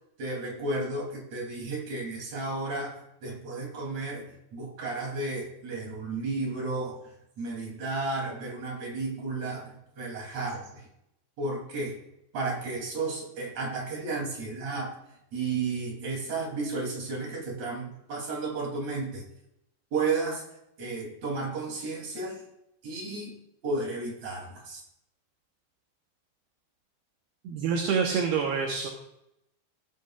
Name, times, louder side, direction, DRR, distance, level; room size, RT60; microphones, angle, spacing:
voice 1, 0.2-7.0 7.4-10.9 11.4-12.0 12.3-15.0 15.3-19.2 19.9-20.4 20.8-22.4 22.8-23.3 23.6-24.8, right 3 dB, 40° right, -2 dB, 4.1 m, -33 dB
voice 2, 27.4-28.9, right 6 dB, 70° right, 1 dB, 2.9 m, -27 dB
17.0 x 9.6 x 2.5 m, 0.81 s
omnidirectional pair, 5.2 m